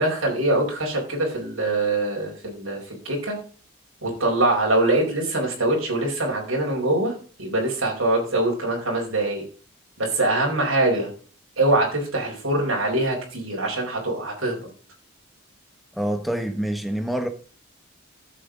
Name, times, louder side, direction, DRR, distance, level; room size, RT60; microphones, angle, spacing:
voice 1, 0.0-3.4 4.0-9.4 10.0-11.1 11.6-14.6, right 2 dB, 75° right, 4.5 m, -23 dB
voice 2, 15.9-17.3, right 1 dB, ahead, 1.2 m, -26 dB
13.5 x 7.7 x 3.8 m
head